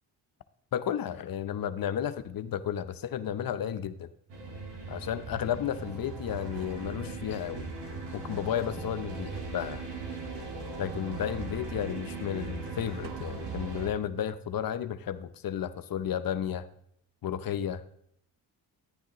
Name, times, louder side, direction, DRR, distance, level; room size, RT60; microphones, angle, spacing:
voice 1, 0.7-4.1 4.9-7.7 8.1-9.9 10.8-16.7 17.2-17.8, left 9 dB, 55° left, 12 dB, 0.7 m, -33 dB
sound 1, 4.3-13.9, right 3 dB, 70° right, 2.2 m, -39 dB
sound 2, 13.0-14.8, right 9 dB, 50° right, 0.8 m, -49 dB
10.5 x 10.0 x 3.0 m, 0.71 s
supercardioid pair, 60°, 43 cm